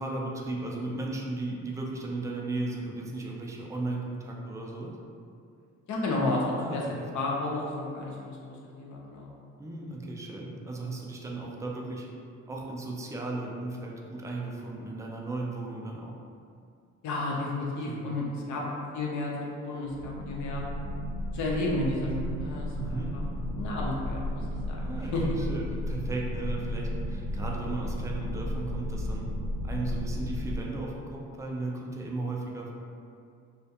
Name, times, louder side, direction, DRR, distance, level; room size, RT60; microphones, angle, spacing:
voice 1, 0.0-5.0 6.6-7.1 9.6-12.1 12.5-16.1 17.8-18.0 22.8-23.1 24.8-29.3 29.6-32.7, right 2 dB, 10° right, -2 dB, 0.3 m, -36 dB
voice 2, 5.9-6.8 7.1-9.3 17.0-20.6 21.3-23.2 23.5-24.8 25.1-25.4, left 2 dB, 75° left, -3 dB, 0.6 m, -32 dB
sound 1, 19.8-30.6, equal, 75° right, 0.6 m, -34 dB
2.4 x 2.1 x 2.7 m, 2.4 s
cardioid pair, 90°, 30 cm